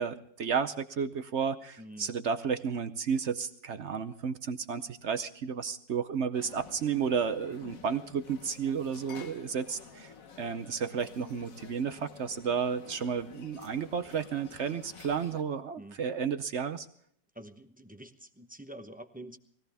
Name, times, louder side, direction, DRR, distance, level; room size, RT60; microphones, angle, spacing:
voice 1, 0.0-16.9, right 6 dB, 55° right, 11 dB, 0.8 m, -32 dB
voice 2, 1.8-2.1 15.8-16.0 17.3-19.4, right 1 dB, 10° right, 5 dB, 0.5 m, -47 dB
sound 1, 6.3-15.4, left 6 dB, 55° left, 1.5 m, -51 dB
21.0 x 16.5 x 3.5 m, 0.67 s
omnidirectional pair, 1.9 m